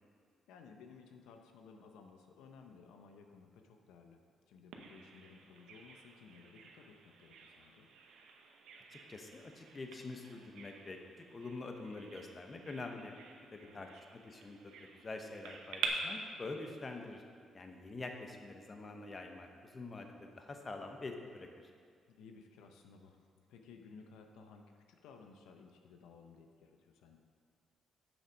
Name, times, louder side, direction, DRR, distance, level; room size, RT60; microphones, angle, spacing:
voice 1, 0.5-4.2 4.5-7.9 13.6-14.0 22.1-27.2, left 5 dB, 90° left, 4 dB, 0.6 m, -57 dB
Bird vocalization bird call bird song, 4.7-15.9, right 8 dB, 90° right, 0.8 m, -49 dB
voice 2, 9.1-11.0 11.3-13.1 13.5-14.7 15.0-17.2 17.5-21.7, left 3 dB, 35° left, 4 dB, 0.9 m, -46 dB
7.2 x 6.4 x 5.1 m, 2.1 s
cardioid pair, 90°, 0 cm